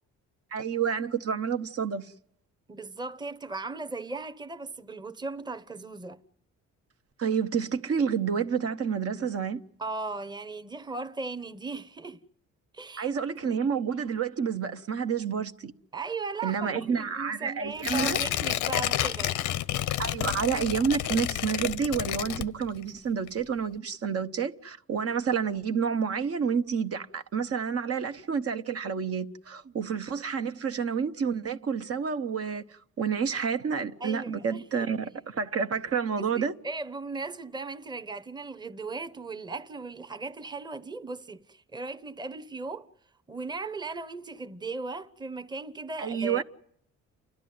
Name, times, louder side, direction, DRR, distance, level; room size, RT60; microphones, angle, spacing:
voice 1, 0.5-2.1 7.2-9.6 13.0-15.7 16.4-18.2 20.0-36.5 46.0-46.4, right 6 dB, 50° right, 1.0 m, -29 dB
voice 2, 2.7-6.2 9.8-12.2 12.7-13.1 13.5-13.6 15.9-19.4 29.6-29.8 34.0-34.9 36.2-42.9 43.3-46.4, right 3 dB, 15° right, 1.0 m, -37 dB
Tearing, 17.8-22.9 23.3-23.4, left 13 dB, 85° left, 0.8 m, -30 dB
29.5 x 13.0 x 9.4 m
cardioid pair, 90°, 30 cm